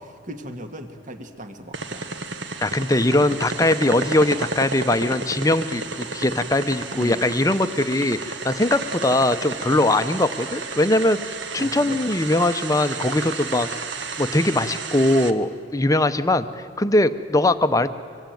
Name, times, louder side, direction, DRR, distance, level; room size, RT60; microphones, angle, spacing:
voice 1, 0.0-2.0 6.9-7.2 11.6-12.0, right 1 dB, 40° right, 7 dB, 1.8 m, -37 dB
sound 1, 1.7-15.3, right 3 dB, 65° right, 1.4 m, -32 dB
voice 2, 2.6-11.2 11.5-13.8 14.2-16.5 16.8-17.9, left 1 dB, 15° left, 10 dB, 0.8 m, -21 dB
25.0 x 23.0 x 9.2 m, 2.3 s
head